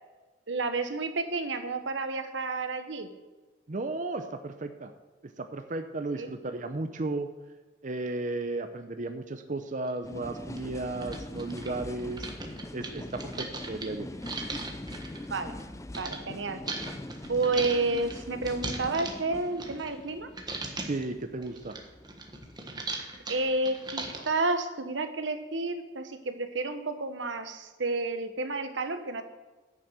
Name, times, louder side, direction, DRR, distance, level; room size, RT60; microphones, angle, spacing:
voice 1, 0.5-3.1 6.2-6.3 15.3-15.6 16.0-16.6 17.3-20.3 23.3-29.2, right 3 dB, 85° right, 8 dB, 1.2 m, -30 dB
voice 2, 3.7-4.9 5.4-7.3 7.8-12.3 12.7-14.1 20.8-21.8, right 2 dB, 45° right, 7 dB, 0.7 m, -34 dB
sound 1, 9.9-10.0 10.6-10.7 10.9-16.2 16.7-20.1 20.4-21.0 21.4-24.4, right 3 dB, 25° right, 1.4 m, -39 dB
sound 2, 10.0-23.6, left 1 dB, 15° left, 0.5 m, -43 dB
10.5 x 6.5 x 7.4 m, 1.3 s
head